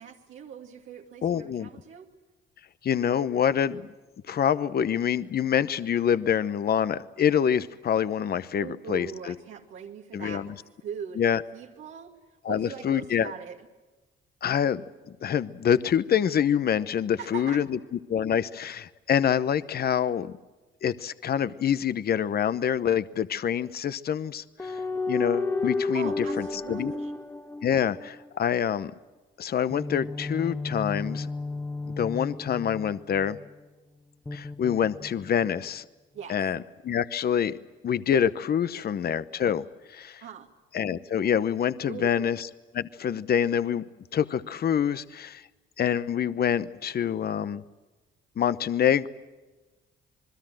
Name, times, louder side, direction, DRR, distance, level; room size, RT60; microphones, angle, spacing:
voice 1, 0.0-2.1 8.6-10.5 10.8-12.1 12.5-13.6 17.2-17.9 25.9-27.1 36.1-36.4 38.8-38.9 40.2-40.5 41.8-42.3, right 7 dB, 80° right, 0 dB, 2.4 m, -40 dB
voice 2, 1.2-1.7 2.8-3.8 4.3-9.3 10.1-10.5 11.2-11.4 12.4-13.3 14.4-14.8 15.2-17.8 18.1-20.3 20.8-24.8 25.1-26.9 27.6-28.9 29.4-31.3 31.9-33.4 34.3-35.8 36.3-37.6 37.8-39.6 39.9-40.2 40.7-42.5 42.7-43.8 44.1-45.4 45.8-47.6 48.4-49.1, left 8 dB, 50° left, 14 dB, 0.9 m, -26 dB
sound 1, 24.6-28.3 29.7-33.5 34.3-35.5, left 3 dB, 10° left, 1.4 m, -32 dB
27.5 x 21.5 x 7.7 m, 1.2 s
cardioid pair, 90°, 20 cm